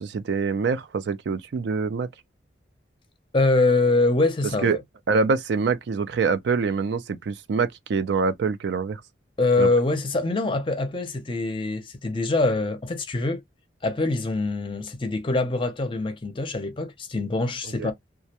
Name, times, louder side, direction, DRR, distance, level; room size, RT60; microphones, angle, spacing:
voice 1, 0.0-2.1 4.6-4.8 5.1-9.0 9.6-9.7 17.8-17.9, right 5 dB, 65° right, 0.3 m, -25 dB
voice 2, 3.3-4.8 9.4-13.4 13.8-17.9, left 2 dB, 25° left, 0.5 m, -24 dB
2.3 x 2.1 x 2.8 m
head